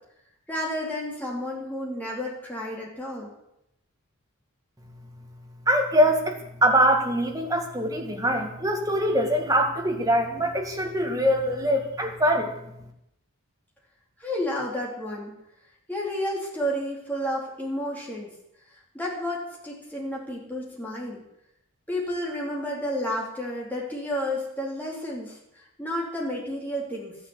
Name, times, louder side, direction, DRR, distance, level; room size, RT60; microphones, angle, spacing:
voice 1, 0.5-3.3 14.2-15.4 15.9-18.3 18.7-21.2 21.9-27.2, equal, 5° left, -3 dB, 3.8 m, -31 dB
voice 2, 5.7-6.3 6.6-12.5, equal, 15° right, 2 dB, 1.9 m, -23 dB
13.5 x 10.0 x 8.2 m, 0.81 s
head